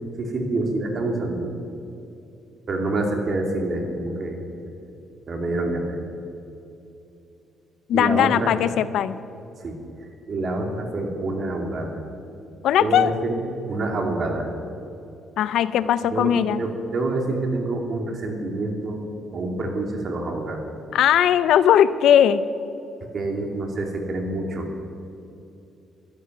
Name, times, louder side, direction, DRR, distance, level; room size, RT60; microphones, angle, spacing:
voice 1, 0.2-1.5 2.7-4.4 5.3-6.0 7.9-8.5 9.6-12.0 12.8-13.3 13.7-14.5 16.0-19.0 19.3-20.6 23.1-24.7, right 2 dB, 50° right, 2 dB, 2.8 m, -27 dB
voice 2, 7.9-9.2 12.6-13.1 15.4-16.6 20.9-22.4, left 10 dB, 80° left, 15 dB, 0.6 m, -19 dB
13.5 x 12.5 x 6.2 m, 2.8 s
cardioid pair, 90°, 0 cm